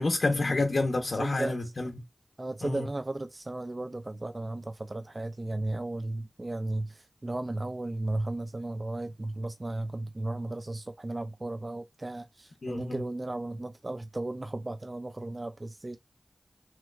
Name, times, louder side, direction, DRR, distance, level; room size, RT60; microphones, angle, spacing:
voice 1, 0.0-1.9 2.6-2.9 12.6-13.1, left 2 dB, 75° left, 0.5 m, -28 dB
voice 2, 1.2-1.6 2.4-16.0, right 2 dB, 40° right, 0.3 m, -35 dB
3.0 x 3.0 x 2.4 m
cardioid pair, 45°, 0 cm